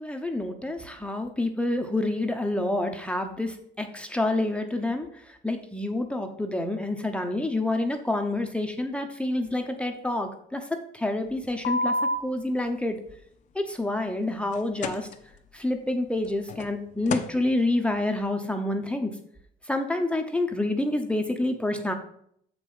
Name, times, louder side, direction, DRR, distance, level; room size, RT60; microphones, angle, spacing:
voice 1, 0.0-5.1 5.4-10.6 10.9-11.9 12.2-13.0 13.5-15.1 15.5-19.1 19.7-21.9, left 2 dB, 5° left, 4 dB, 0.8 m, -28 dB
sound 1, 11.4-12.2 14.5-15.1 16.2-16.7 17.1-17.3, left 2 dB, 45° left, 0.7 m, -27 dB
6.7 x 5.1 x 5.5 m, 0.67 s
cardioid pair, 110°, 17 cm